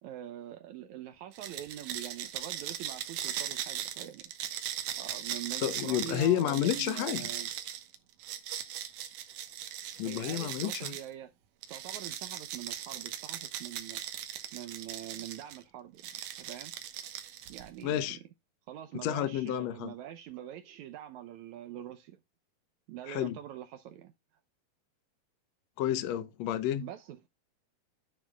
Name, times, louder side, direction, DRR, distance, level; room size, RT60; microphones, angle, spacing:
voice 1, 0.0-4.2 4.9-7.5 10.0-11.3 11.7-14.0 14.5-16.0 16.4-16.7 17.5-18.2 18.7-22.2 22.9-24.1 26.8-27.3, right 12 dB, 85° right, 1.6 m, -44 dB
sound 1, 1.3-11.1 11.6-15.6 16.0-17.8, right 11 dB, 65° right, 2.3 m, -39 dB
voice 2, 5.6-7.3 10.0-10.9 17.8-18.2 19.0-19.9 23.1-23.4 25.8-26.9, left 11 dB, 90° left, 1.5 m, -30 dB
10.5 x 8.9 x 2.3 m
omnidirectional pair, 4.3 m